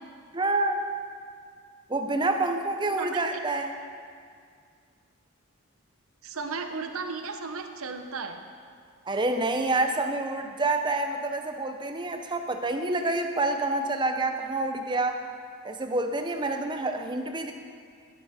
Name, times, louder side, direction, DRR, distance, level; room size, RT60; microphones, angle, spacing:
voice 1, 0.3-0.8 1.9-3.8 9.1-15.2 15.6-17.5, right 2 dB, 20° right, 6 dB, 0.7 m, -27 dB
voice 2, 6.2-8.4, right 4 dB, 75° right, 6 dB, 0.9 m, -35 dB
11.5 x 11.5 x 4.2 m, 2.2 s
head